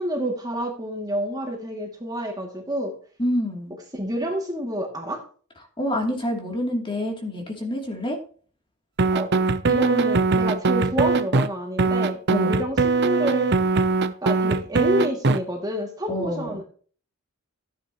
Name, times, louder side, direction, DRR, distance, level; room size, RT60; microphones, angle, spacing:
voice 1, 0.0-3.0 3.9-5.2 9.1-9.3 9.7-13.5 14.2-16.6, equal, 20° right, 0 dB, 2.4 m, -28 dB
voice 2, 3.2-3.8 5.8-8.2 12.3-12.6 16.1-16.6, left 1 dB, 25° left, 1 dB, 2.9 m, -27 dB
sound 1, 9.0-11.5 11.8-15.4, right 3 dB, 50° right, 0.8 m, -21 dB
14.5 x 9.8 x 3.0 m, 0.42 s
head